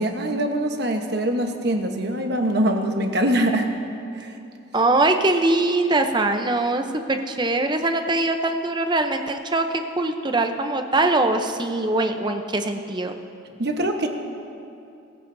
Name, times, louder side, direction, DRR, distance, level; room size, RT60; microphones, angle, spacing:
voice 1, 0.0-3.7 4.1-4.3 13.6-14.1, right 1 dB, 50° right, 4 dB, 1.1 m, -23 dB
voice 2, 4.7-13.2, right 2 dB, 20° right, 6 dB, 0.7 m, -22 dB
23.5 x 14.5 x 2.7 m, 2.6 s
head